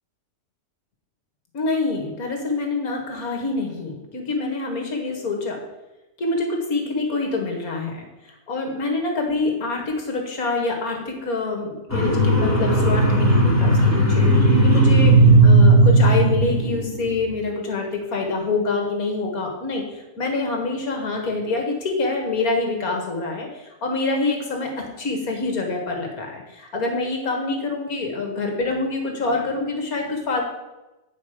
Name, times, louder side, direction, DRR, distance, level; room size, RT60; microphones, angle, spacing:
voice 1, 1.5-5.6 6.2-14.2 14.6-30.4, left 3 dB, 55° left, 2 dB, 2.0 m, -26 dB
sound 1, 11.9-17.2, right 2 dB, 10° left, 1.7 m, -16 dB
9.3 x 5.3 x 5.0 m, 1.0 s
omnidirectional pair, 1.9 m